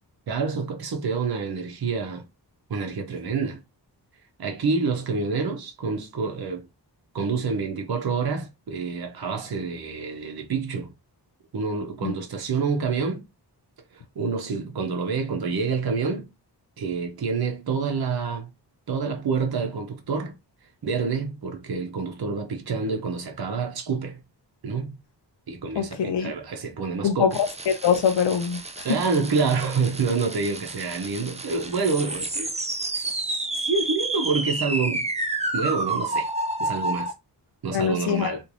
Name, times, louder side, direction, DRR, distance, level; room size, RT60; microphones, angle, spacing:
voice 1, 0.3-2.2 2.7-3.6 4.4-6.6 7.1-10.9 11.5-13.2 14.2-16.3 16.8-18.5 18.9-20.3 20.8-24.2 24.6-25.0 25.5-27.4 28.8-32.5 32.9-35.1 35.5-36.3 36.6-37.1 37.6-38.4, right 4 dB, 65° right, 0.8 m, -27 dB
voice 2, 25.8-26.3 27.0-29.0 37.7-38.4, left 7 dB, 90° left, 0.5 m, -24 dB
sound 1, 27.3-37.1, right 2 dB, 15° right, 0.4 m, -30 dB
3.1 x 2.5 x 2.5 m
wide cardioid pair, 120°, 41 cm